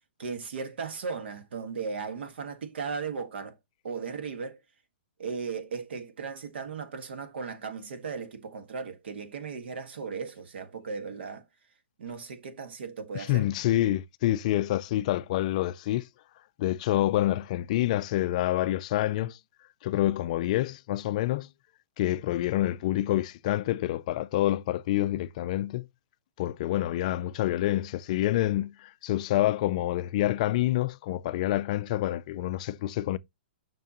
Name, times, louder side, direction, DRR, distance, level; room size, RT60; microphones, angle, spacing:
voice 1, 0.2-3.5 3.8-4.6 5.2-11.4 12.0-13.5, right 5 dB, 70° right, 1.6 m, -36 dB
voice 2, 13.1-16.1 16.6-19.4 19.8-21.5 22.0-25.9 26.4-33.2, left 14 dB, 40° left, 0.4 m, -27 dB
7.2 x 5.9 x 2.9 m
hypercardioid pair, 160°, 6 cm